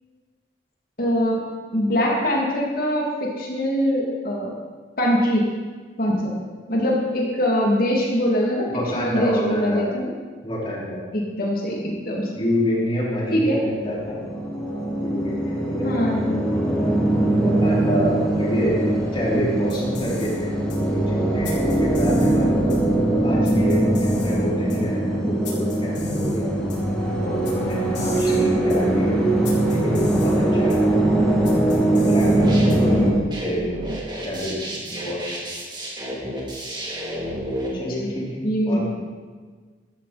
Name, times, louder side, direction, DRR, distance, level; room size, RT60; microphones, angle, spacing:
voice 1, 1.0-1.4 1.7-4.5 5.0-5.5 6.0-8.7 9.0-10.1 11.1-12.3 13.3-13.6 15.8-16.4 28.1-28.5 37.7-38.9, equal, 55° left, -3 dB, 2.6 m, -23 dB
voice 2, 8.7-9.8 10.4-11.0 12.3-14.2 14.9-16.8 17.1-18.8 19.1-22.8 23.2-26.7 27.2-29.2 29.7-31.2 32.0-33.1 33.4-33.8 34.2-35.3 37.7-38.9, equal, 30° left, -6 dB, 4.5 m, -28 dB
sound 1, 13.7-33.1, right 1 dB, 5° left, 2.5 m, -22 dB
sound 2, 19.6-33.0, left 1 dB, 80° left, 4.5 m, -32 dB
sound 3, 32.2-37.7, equal, 25° right, 2.9 m, -31 dB
14.0 x 13.5 x 4.3 m, 1.5 s
head